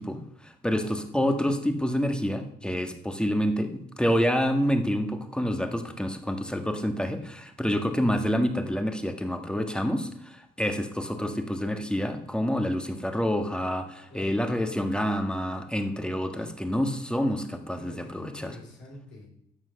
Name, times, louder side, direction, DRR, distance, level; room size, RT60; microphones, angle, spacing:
voice 1, 0.0-18.5, equal, 5° left, 6 dB, 1.6 m, -28 dB
voice 2, 0.6-1.0 7.7-8.0 14.1-14.4 17.8-19.3, left 1 dB, 70° left, -2 dB, 4.3 m, -45 dB
12.5 x 7.6 x 6.5 m, 0.73 s
cardioid pair, 90°, 20 cm